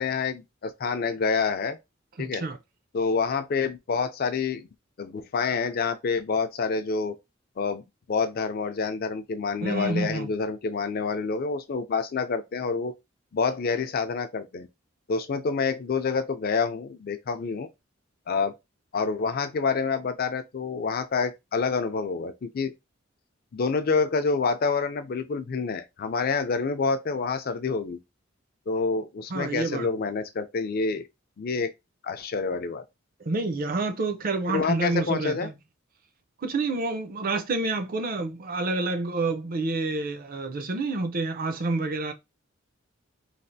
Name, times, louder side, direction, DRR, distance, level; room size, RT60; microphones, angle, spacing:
voice 1, 0.0-1.8 2.2-2.4 2.9-4.7 5.0-7.1 7.6-7.8 8.1-12.9 13.3-14.7 15.1-17.7 18.3-18.5 18.9-22.7 23.5-28.0 28.7-31.1 31.4-31.7 32.0-32.8 34.5-35.5, left 4 dB, 50° left, 0.4 m, -27 dB
voice 2, 2.2-2.6 9.6-10.3 29.3-29.9 33.2-35.5 36.4-42.1, right 3 dB, 45° right, 0.5 m, -28 dB
3.2 x 2.4 x 2.6 m
head